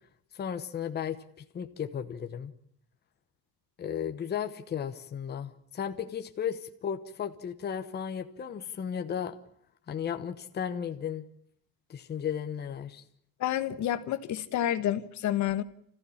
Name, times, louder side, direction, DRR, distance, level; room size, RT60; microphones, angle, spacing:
voice 1, 0.3-1.2 1.5-2.5 3.8-9.3 9.9-11.3 11.9-13.0, left 8 dB, 30° left, 1.1 m, -34 dB
voice 2, 13.4-15.6, left 12 dB, 55° left, 1.2 m, -29 dB
30.0 x 15.0 x 8.7 m
cardioid pair, 170°, 35 cm